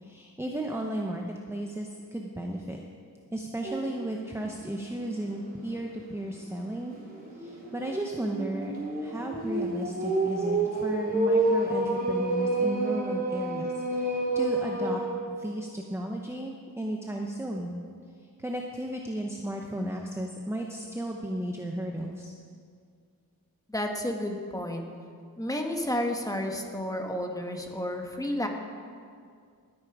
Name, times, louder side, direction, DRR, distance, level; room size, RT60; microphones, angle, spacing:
voice 1, 0.0-2.8 3.3-6.9 7.4-8.7 9.0-15.0 15.3-17.8 18.4-22.3, right 1 dB, 5° right, 1 dB, 0.9 m, -34 dB
sound 1, 3.6-4.0 4.4-4.5 4.9-5.0 7.1-15.1, right 2 dB, 25° right, 3.4 m, -29 dB
voice 2, 23.7-24.8 25.4-28.5, left 1 dB, 10° left, 2 dB, 1.6 m, -31 dB
19.0 x 8.8 x 4.8 m, 2.2 s
wide cardioid pair, 95°, 37 cm